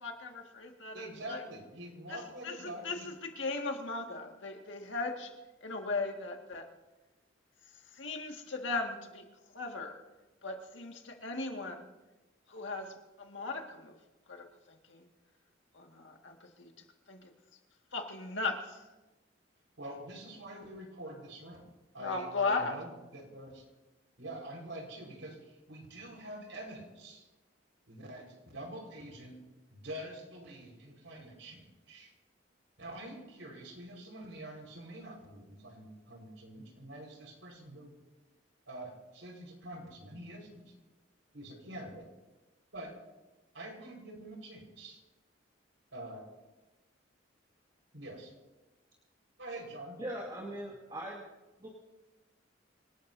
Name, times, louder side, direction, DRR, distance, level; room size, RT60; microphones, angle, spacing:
voice 1, 0.0-1.4 2.1-2.2 2.4-2.5 2.8-3.0 3.2-5.3 5.6-6.6 8.0-9.2 9.5-10.0 10.4-11.9 12.5-12.9 13.2-13.9 14.3-14.4 14.9-15.0 15.7-16.7 17.1-17.3 17.9-18.8 22.0-22.7, left 3 dB, 75° left, 3 dB, 2.0 m, -37 dB
voice 2, 0.9-3.1 19.8-21.6 21.9-23.6 24.2-27.3 27.9-29.4 29.7-32.1 32.8-37.9 38.7-40.7 41.3-42.0 42.7-42.9 43.5-45.0 45.9-46.2 47.9-48.3 49.4-50.0, right 1 dB, 80° right, 1 dB, 4.9 m, -46 dB
voice 3, 50.0-51.3 51.6-51.7, right 1 dB, 25° right, -2 dB, 2.1 m, -40 dB
26.5 x 18.5 x 2.8 m, 1.1 s
head